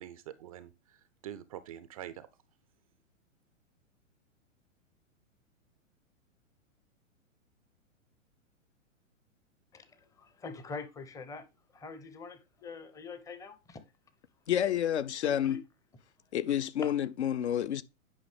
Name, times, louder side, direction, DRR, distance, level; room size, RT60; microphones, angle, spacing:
voice 1, 0.0-2.3, right 11 dB, 30° right, 0.4 m, -45 dB
voice 2, 9.7-11.5 11.7-13.8 15.2-15.6 16.8-16.9, left 4 dB, 10° left, 0.6 m, -44 dB
voice 3, 14.5-15.6 16.3-17.8, left 10 dB, 60° left, 0.6 m, -29 dB
9.5 x 5.4 x 3.3 m
figure-of-eight pair, 110°, 40 cm